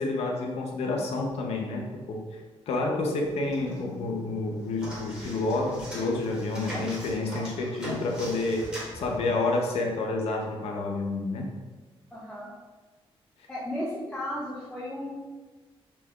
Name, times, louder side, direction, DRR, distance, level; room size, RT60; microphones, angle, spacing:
voice 1, 0.0-2.2 2.7-8.7 8.9-11.5, left 2 dB, 90° left, 0 dB, 0.6 m, -29 dB
sound 1, 3.2-4.1 4.4-9.8, equal, 10° right, 1.0 m, -40 dB
voice 2, 12.1-12.5 13.5-15.1, left 1 dB, 5° left, -8 dB, 0.5 m, -34 dB
3.0 x 2.3 x 3.5 m, 1.3 s
wide cardioid pair, 175°, 10 cm